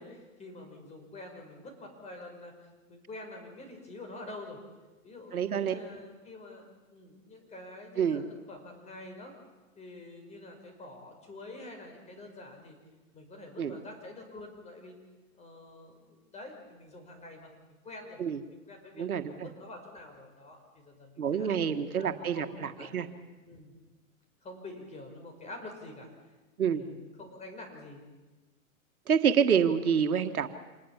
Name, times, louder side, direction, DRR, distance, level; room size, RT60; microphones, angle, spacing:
voice 1, 0.0-2.5 2.9-4.6 5.0-6.7 6.9-9.3 9.8-12.8 13.1-15.0 15.4-18.2 18.5-21.5 22.0-23.1 23.4-23.8 24.4-26.1 26.7-28.0, left 2 dB, 15° left, 3 dB, 5.3 m, -47 dB
voice 2, 5.3-5.8 8.0-8.2 13.6-13.8 18.2-18.4 19.0-19.5 21.2-23.1 26.6-26.8 29.1-30.5, right 7 dB, 90° right, 8 dB, 1.8 m, -27 dB
27.0 x 20.5 x 7.4 m, 1.2 s
hypercardioid pair, 140°, 42 cm